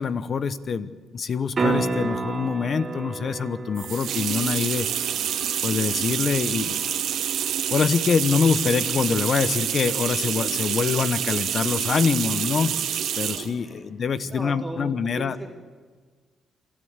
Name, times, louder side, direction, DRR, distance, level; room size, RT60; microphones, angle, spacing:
voice 1, 0.0-4.9 5.6-6.9 7.7-12.8 13.2-15.4, left 6 dB, 50° left, 14 dB, 1.0 m, -25 dB
sound 1, 1.5-7.6 12.2-12.3, right 4 dB, 35° right, 3.0 m, -32 dB
sound 2, 3.8-13.5, right 9 dB, 75° right, 1.4 m, -27 dB
voice 2, 13.3-13.9 14.2-15.6, right 1 dB, 5° right, -1 dB, 3.6 m, -38 dB
27.0 x 12.5 x 8.2 m, 1.5 s
cardioid pair, 90°, 0 cm